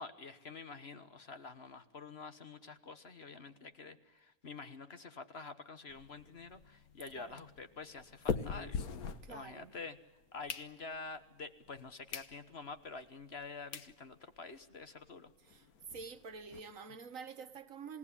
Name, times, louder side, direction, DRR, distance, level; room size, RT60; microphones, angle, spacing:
voice 1, 0.0-10.0 10.3-15.3, left 4 dB, 45° left, 1.4 m, -48 dB
sound 1, 5.9-9.8 10.2-11.2 11.7-11.8 12.1-12.3 12.8-12.9 13.4-13.5 13.7-13.9 14.4-14.5 14.6-14.8 15.0-15.1 15.4-16.6, left 6 dB, 75° left, 1.7 m, -42 dB
voice 2, 9.2-9.7 15.4-18.0, right 5 dB, 60° right, 1.6 m, -48 dB
28.0 x 17.5 x 9.9 m
omnidirectional pair, 1.6 m